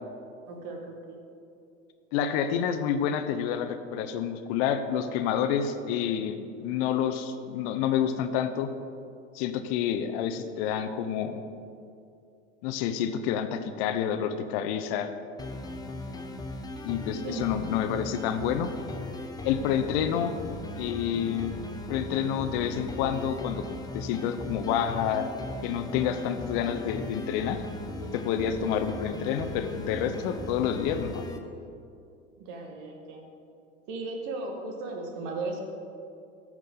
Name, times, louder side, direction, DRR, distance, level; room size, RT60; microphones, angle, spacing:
voice 1, 0.5-1.2 17.2-17.7 32.4-33.3 33.9-35.6, right 3 dB, 55° right, 2 dB, 1.8 m, -36 dB
voice 2, 2.1-8.7 9.3-11.4 12.6-15.1 16.8-18.7 19.4-20.3 20.8-21.6 21.9-25.3 25.6-27.6 28.1-31.2, left 8 dB, 55° left, 9 dB, 0.8 m, -28 dB
sound 1, 15.4-31.4, left 1 dB, 10° left, 0.9 m, -38 dB
15.0 x 6.1 x 3.8 m, 2.6 s
hypercardioid pair, 80°, 37 cm